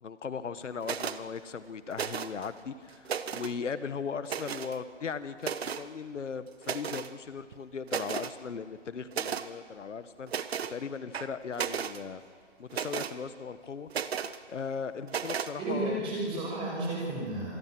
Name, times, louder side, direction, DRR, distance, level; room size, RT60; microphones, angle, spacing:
voice 1, 0.0-10.3 10.7-12.2 12.6-13.9 14.5-16.0 16.3-16.4, left 6 dB, 85° left, 13 dB, 1.3 m, -38 dB
sound 1, 0.8-1.2 1.9-2.5 2.9-3.5 4.2-4.8 5.4-5.9 6.6-7.1 7.5-7.6 7.9-8.3 9.1-9.5 10.3-10.7 11.1-12.0 12.7-13.1 13.9-14.4 15.1-15.5, right 7 dB, 60° right, 1.0 m, -34 dB
voice 2, 15.6-17.6, right 2 dB, 15° right, -3 dB, 6.1 m, -32 dB
26.5 x 19.5 x 6.1 m, 2.1 s
hypercardioid pair, 160°, 36 cm